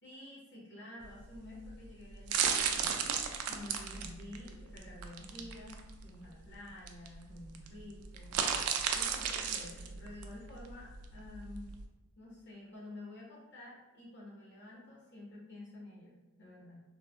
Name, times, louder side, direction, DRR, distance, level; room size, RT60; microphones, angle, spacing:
voice 1, 0.0-3.1 3.5-11.7 12.2-16.8, left 1 dB, 55° left, -6 dB, 1.0 m, -50 dB
sound 1, 1.0-11.8, right 7 dB, 85° right, 0.3 m, -35 dB
3.2 x 2.1 x 2.4 m, 1.1 s
head